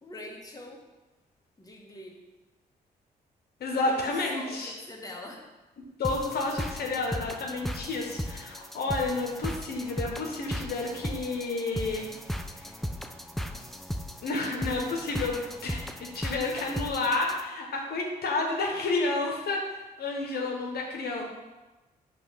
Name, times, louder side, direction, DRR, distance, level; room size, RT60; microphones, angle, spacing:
voice 1, 0.0-0.8 1.6-2.2 3.8-5.5 16.7-17.1, left 1 dB, 20° left, 0 dB, 1.2 m, -44 dB
voice 2, 3.6-4.7 5.8-12.1 12.5-12.7 14.2-15.4 15.6-19.7 20.0-21.2, left 3 dB, 65° left, 0 dB, 1.0 m, -30 dB
sound 1, 6.0-17.4, equal, ahead, 0.4 m, -36 dB
5.6 x 3.1 x 5.6 m, 1.1 s
cardioid pair, 65°, 17 cm